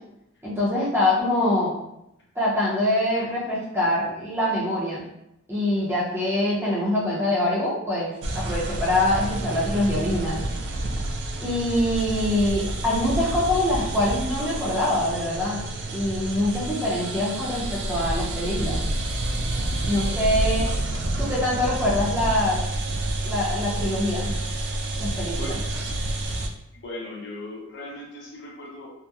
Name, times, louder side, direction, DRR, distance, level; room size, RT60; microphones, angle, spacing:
voice 1, 0.4-1.8 2.4-5.0 5.5-10.4 11.4-15.6 15.9-18.8 19.9-20.7 21.2-22.6 23.2-24.3 24.9-25.5, left 1 dB, 10° right, -7 dB, 0.6 m, -24 dB
sound 1, 8.2-26.5, right 1 dB, 55° right, 0.3 m, -29 dB
voice 2, 26.7-28.9, left 1 dB, 55° left, -3 dB, 0.6 m, -38 dB
2.7 x 2.1 x 2.3 m, 0.82 s
head